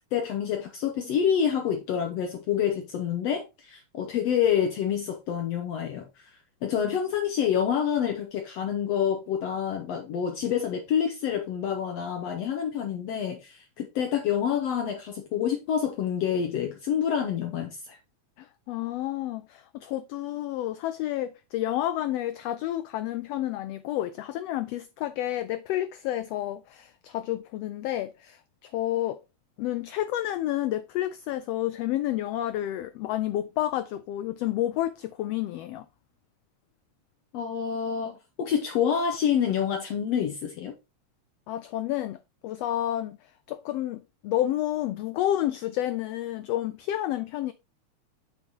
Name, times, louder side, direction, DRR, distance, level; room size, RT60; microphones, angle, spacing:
voice 1, 0.1-6.3 6.6-18.0 37.3-40.7, left 8 dB, 70° left, 1.8 m, -27 dB
voice 2, 18.4-29.2 29.6-35.8 41.5-42.2 42.4-43.2 43.5-47.5, left 13 dB, 85° left, 1.4 m, -30 dB
7.1 x 7.1 x 2.9 m
omnidirectional pair, 3.4 m